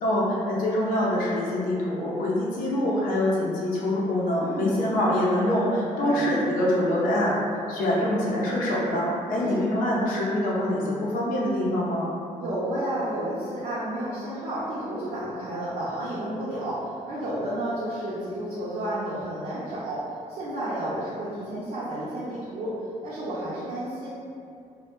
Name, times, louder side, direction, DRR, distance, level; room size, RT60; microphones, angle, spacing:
voice 1, 0.0-12.1, left 1 dB, 85° left, -5 dB, 0.6 m, -25 dB
voice 2, 4.4-4.7 5.9-6.3 9.4-9.6 12.4-20.0 20.3-22.7 23.0-24.1, right 1 dB, 60° right, -10 dB, 0.5 m, -31 dB
2.1 x 2.1 x 2.9 m, 2.5 s
cardioid pair, 145°, 14 cm